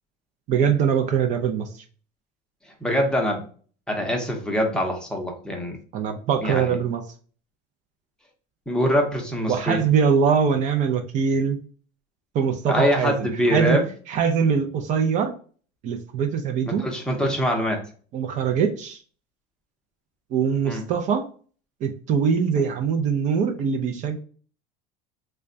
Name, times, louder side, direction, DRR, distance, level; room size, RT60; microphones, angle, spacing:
voice 1, 0.5-1.7 5.9-7.0 9.5-11.6 12.3-13.8 14.1-15.3 15.8-16.8 18.1-19.0 20.3-21.3 21.8-24.2, right 6 dB, 45° right, 6 dB, 0.5 m, -22 dB
voice 2, 2.8-3.4 3.9-5.8 6.4-6.8 8.7-9.8 12.7-13.9 16.6-17.8 20.6-20.8, equal, 5° left, 0 dB, 0.7 m, -24 dB
3.4 x 2.2 x 3.7 m, 0.42 s
cardioid pair, 150°, 17 cm